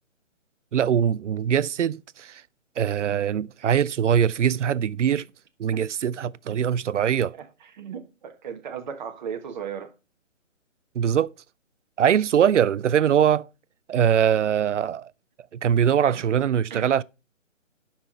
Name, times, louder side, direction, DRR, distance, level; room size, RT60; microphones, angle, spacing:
voice 1, 0.7-2.4 2.8-5.3 5.6-7.3 11.0-11.3 12.0-13.5 13.9-15.1 15.5-17.0, right 9 dB, 65° right, 0.5 m, -22 dB
voice 2, 7.3-9.9 16.1-16.2 16.7-16.9, right 7 dB, 35° right, 1.2 m, -36 dB
7.4 x 5.9 x 5.6 m
figure-of-eight pair, 150°, 39 cm